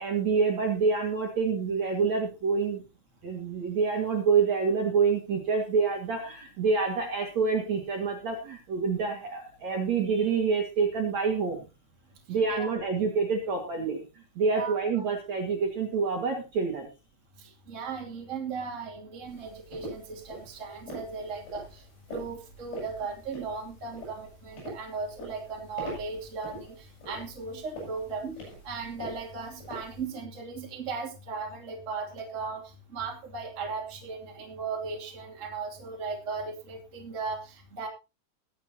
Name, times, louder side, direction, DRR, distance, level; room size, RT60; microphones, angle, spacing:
voice 1, 0.0-2.8 3.2-11.6 12.3-14.0 14.4-16.9, right 5 dB, 50° right, 1 dB, 2.7 m, -27 dB
voice 2, 17.7-21.8 22.1-28.4 28.6-32.6 32.9-37.9, right 4 dB, 20° right, 0 dB, 2.4 m, -37 dB
sound 1, 19.3-30.1, equal, 70° left, 9.7 m, -44 dB
21.5 x 8.3 x 2.9 m, 0.27 s
omnidirectional pair, 5.1 m